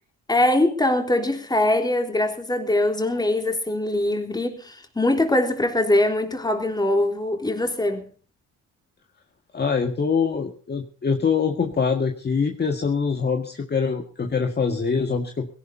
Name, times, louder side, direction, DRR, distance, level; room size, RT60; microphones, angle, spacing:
voice 1, 0.3-8.1, left 1 dB, 15° left, 3.7 m, -22 dB
voice 2, 9.5-15.5, left 5 dB, 35° left, 1.9 m, -24 dB
21.0 x 17.5 x 2.8 m
cardioid pair, 90°, 30 cm